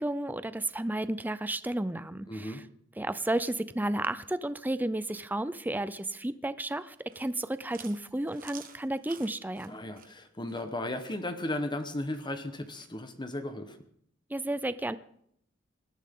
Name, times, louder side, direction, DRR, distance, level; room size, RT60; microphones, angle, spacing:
voice 1, 0.0-2.6 3.0-9.8 14.3-15.0, right 1 dB, 10° right, 14 dB, 0.5 m, -32 dB
voice 2, 2.3-2.6 9.7-13.8, left 1 dB, 25° left, 8 dB, 1.1 m, -35 dB
Chewing mastication, 6.9-12.9, right 8 dB, 45° right, 1.3 m, -52 dB
19.5 x 13.0 x 3.8 m, 0.68 s
head